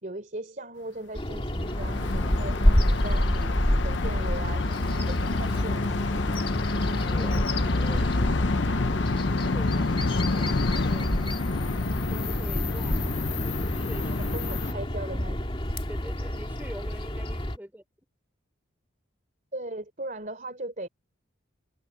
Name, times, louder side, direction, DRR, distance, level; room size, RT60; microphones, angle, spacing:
voice 1, 0.0-6.4 14.0-15.5 19.5-20.9, right 1 dB, 40° right, 3.4 m, -39 dB
Bird vocalization bird call bird song, 1.1-17.6, equal, 25° left, 2.5 m, -28 dB
sound 1, 1.5-14.7, left 3 dB, 65° left, 0.7 m, -29 dB
voice 2, 7.0-11.2 12.1-14.3 15.9-17.8, equal, 10° right, 3.2 m, -45 dB
head